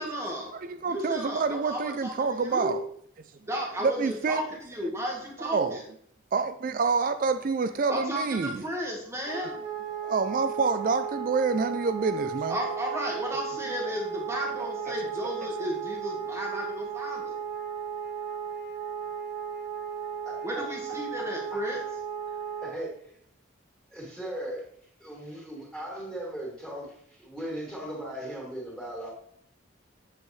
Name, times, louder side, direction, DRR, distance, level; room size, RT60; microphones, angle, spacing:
voice 1, 0.0-0.5 0.9-2.7 3.5-5.8 7.9-9.6 12.5-17.4 20.4-21.8, equal, 15° right, -1 dB, 1.5 m, -33 dB
voice 2, 0.5-2.8 3.8-4.4 5.4-5.8 6.3-8.6 10.0-12.6 13.9-14.0 14.9-15.0 15.4-15.5, right 4 dB, 40° right, 10 dB, 0.3 m, -27 dB
Wind instrument woodwind instrument, 9.3-22.8, right 7 dB, 60° right, 1.7 m, -35 dB
voice 3, 20.2-20.6 21.2-21.6 22.6-22.9 23.9-24.6 25.0-29.1, right 1 dB, 5° left, -4 dB, 2.8 m, -38 dB
8.0 x 7.5 x 3.2 m, 0.66 s
head